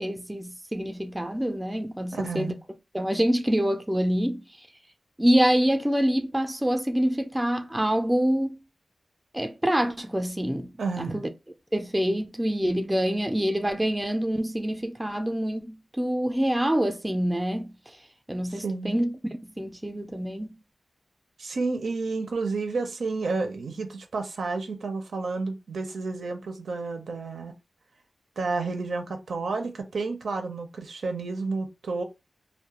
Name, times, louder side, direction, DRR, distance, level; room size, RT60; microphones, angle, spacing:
voice 1, 0.0-2.5 2.9-4.4 5.2-8.6 9.3-10.7 11.0-11.3 11.7-17.8 18.3-19.1 19.4-20.5, equal, 10° right, 0.3 m, -26 dB
voice 2, 2.1-2.6 10.8-11.2 18.5-19.0 21.4-27.5 28.4-32.0, right 3 dB, 90° right, 0.5 m, -31 dB
2.3 x 2.1 x 2.8 m
wide cardioid pair, 120°, 0 cm